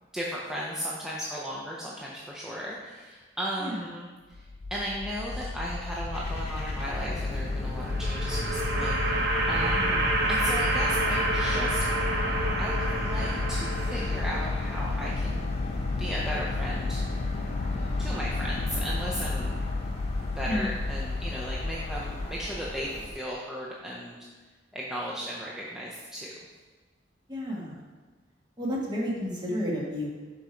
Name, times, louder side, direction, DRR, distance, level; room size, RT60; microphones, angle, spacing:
voice 1, 0.1-9.9 10.3-11.9 12.6-15.5 16.0-17.0 18.0-19.6 20.4-24.2 24.7-26.3, equal, 5° right, -5 dB, 0.6 m, -36 dB
sound 1, 4.3-22.3, left 3 dB, 85° left, 0.5 m, -32 dB
sound 2, 6.1-23.1, left 1 dB, 35° left, 1.0 m, -39 dB
sound 3, 7.6-14.7, right 2 dB, 65° right, 0.9 m, -29 dB
voice 2, 9.7-10.1 20.5-20.7 27.3-27.8 28.6-30.1, left 1 dB, 25° right, -4 dB, 1.5 m, -31 dB
6.6 x 4.4 x 5.0 m, 1.4 s
head